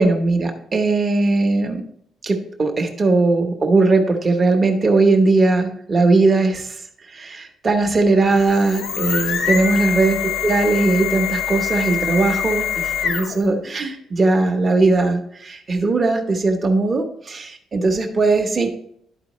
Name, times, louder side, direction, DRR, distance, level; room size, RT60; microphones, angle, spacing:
voice 1, 0.0-1.8 2.2-6.8 7.1-18.7, right 3 dB, 25° right, 4 dB, 1.0 m, -19 dB
sound 1, 8.2-13.5, left 8 dB, 65° left, 0.9 m, -24 dB
12.0 x 4.7 x 3.0 m, 0.69 s
cardioid pair, 180°, 0 cm